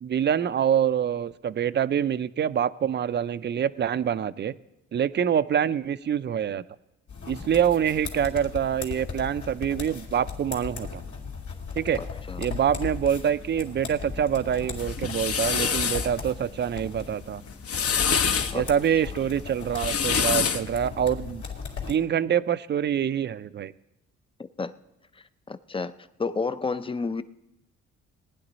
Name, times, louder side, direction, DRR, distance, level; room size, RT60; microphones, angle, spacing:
voice 1, 0.0-4.5 4.9-6.6 7.3-11.0 11.7-12.0 12.4-17.4 18.5-21.4 21.9-23.7, right 9 dB, 35° right, 15 dB, 0.5 m, -25 dB
sound 1, 7.1-21.9, left 5 dB, 70° left, 2.6 m, -37 dB
voice 2, 12.0-12.4 18.5-18.7 18.9-19.0 24.6-24.7 25.1-25.9 26.2-27.2, left 4 dB, 20° left, 13 dB, 0.5 m, -31 dB
sound 2, 14.8-16.1 17.5-18.5 19.6-20.7, left 6 dB, 50° left, 0.9 m, -25 dB
19.0 x 9.9 x 4.1 m, 0.89 s
cardioid pair, 90°, 30 cm